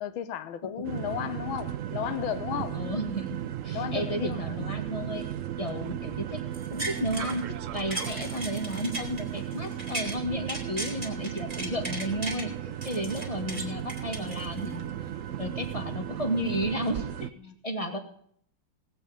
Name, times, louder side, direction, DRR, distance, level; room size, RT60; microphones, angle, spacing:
voice 1, 0.0-2.8 3.7-4.6 17.4-17.6, left 10 dB, 85° left, 1.7 m, -34 dB
sound 1, 0.8-17.3, right 10 dB, 70° right, 0.7 m, -35 dB
voice 2, 2.7-3.4 3.6-5.3 5.6-6.4 6.7-12.5 12.8-14.9 15.4-17.3 17.6-18.0, equal, 20° left, 1.8 m, -33 dB
sound 2, 6.5-7.4 7.7-10.2 10.5-12.4 12.8-14.8 15.3-15.4, right 2 dB, 20° right, 2.8 m, -37 dB
18.5 x 8.0 x 5.1 m
omnidirectional pair, 2.2 m